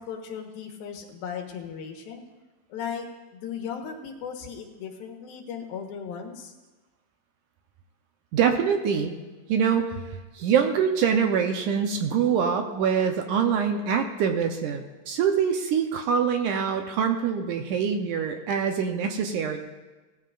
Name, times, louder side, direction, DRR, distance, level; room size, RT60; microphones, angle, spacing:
voice 1, 0.0-2.2 2.7-3.1 3.3-6.5, left 7 dB, 85° left, 2 dB, 3.1 m, -36 dB
voice 2, 8.3-9.2 9.5-10.0 10.3-19.6, right 7 dB, 75° right, 4 dB, 2.0 m, -24 dB
19.0 x 14.5 x 2.5 m, 1.2 s
omnidirectional pair, 4.1 m